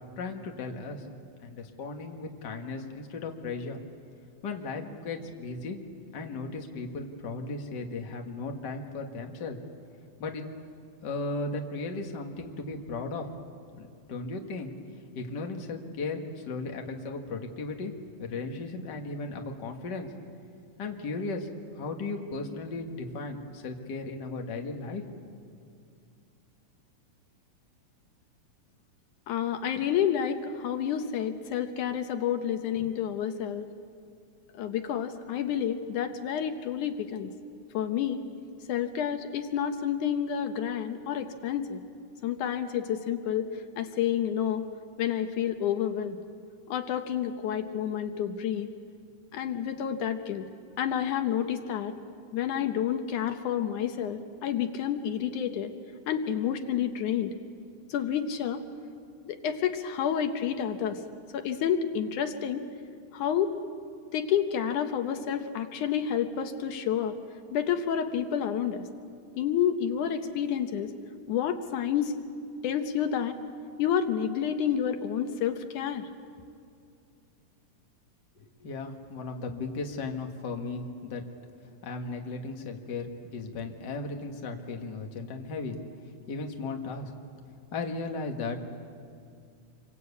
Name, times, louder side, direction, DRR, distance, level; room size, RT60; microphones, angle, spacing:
voice 1, 0.2-1.0 1.4-3.8 4.4-5.8 6.1-9.6 10.2-10.5 11.0-13.3 13.8-14.8 15.2-17.9 18.2-20.1 20.8-21.5 21.8-25.0 78.4-81.2 81.8-85.8 86.3-87.1 87.7-88.6, left 3 dB, 40° left, 3 dB, 2.0 m, -36 dB
voice 2, 29.3-33.7 34.6-37.3 37.7-38.3 38.7-41.8 42.2-43.5 43.8-44.7 45.0-46.2 46.7-48.7 49.3-50.5 50.8-52.0 52.3-55.7 56.1-57.3 57.9-58.6 59.3-61.0 61.3-62.7 63.1-63.5 64.1-67.2 67.5-68.8 69.4-70.9 71.3-72.1 72.6-73.3 73.8-76.1, left 9 dB, 75° left, 7 dB, 2.5 m, -29 dB
27.5 x 23.5 x 8.4 m, 2.4 s
omnidirectional pair, 3.6 m